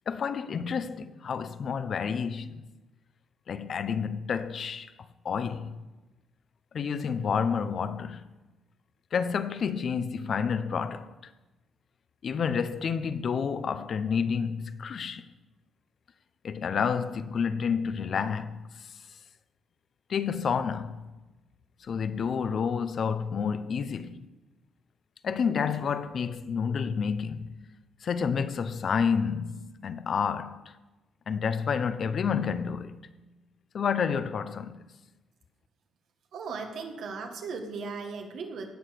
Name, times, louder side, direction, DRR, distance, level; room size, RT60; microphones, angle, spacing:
voice 1, 0.1-2.6 3.5-4.9 5.2-5.8 6.7-8.2 9.1-11.1 12.2-15.3 16.4-18.6 20.1-21.1 21.8-24.2 25.2-27.6 28.0-30.6 31.3-33.1 33.7-34.8, left 6 dB, 55° left, 0.7 m, -29 dB
voice 2, 36.3-38.7, right 4 dB, 70° right, 1.8 m, -37 dB
17.0 x 6.3 x 6.7 m
cardioid pair, 90°, 0 cm